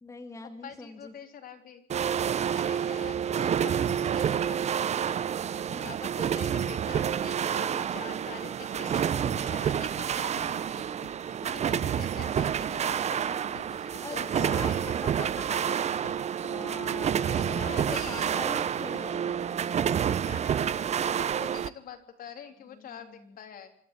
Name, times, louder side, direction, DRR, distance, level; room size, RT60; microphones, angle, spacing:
voice 1, 0.0-1.1 5.6-5.9 9.4-9.6 14.0-19.6 22.7-23.4, left 3 dB, 15° left, 5 dB, 2.1 m, -43 dB
voice 2, 0.6-1.8 2.5-5.2 5.8-10.9 11.3-15.0 17.4-18.4 20.2-23.7, left 8 dB, 60° left, 6 dB, 3.5 m, -46 dB
sound 1, 1.9-21.7, right 8 dB, 40° right, 0.8 m, -29 dB
sound 2, 9.3-19.1, left 9 dB, 85° left, 2.5 m, -52 dB
26.5 x 12.0 x 8.4 m, 0.64 s
cardioid pair, 110°, 17 cm